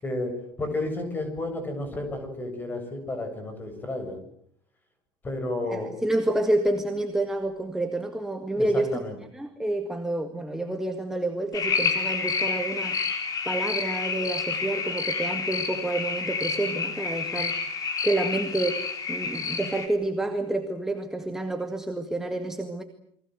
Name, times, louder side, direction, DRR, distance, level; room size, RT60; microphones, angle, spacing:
voice 1, 0.0-4.2 5.2-6.0 8.5-9.2, left 2 dB, 15° left, 7 dB, 7.6 m, -32 dB
voice 2, 5.7-9.0 9.3-13.0 13.5-22.8, right 1 dB, 5° right, 5 dB, 1.9 m, -29 dB
sound 1, 11.5-19.9, left 5 dB, 30° left, 4.6 m, -29 dB
29.5 x 23.5 x 7.9 m, 0.66 s
cardioid pair, 155°, 11 cm